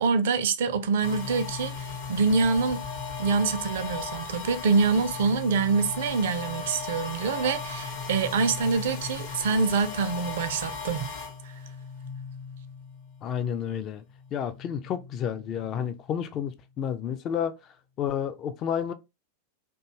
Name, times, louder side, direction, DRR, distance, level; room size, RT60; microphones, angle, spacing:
voice 1, 0.0-2.8 3.2-11.1, right 4 dB, 55° right, 0.4 m, -25 dB
sound 1, 1.0-13.7 14.0-16.5, left 5 dB, 50° left, 0.7 m, -37 dB
voice 2, 13.2-14.0 14.3-17.5 18.0-18.9, left 8 dB, 35° left, 0.3 m, -30 dB
2.5 x 2.2 x 2.9 m
figure-of-eight pair, 90°, 0 cm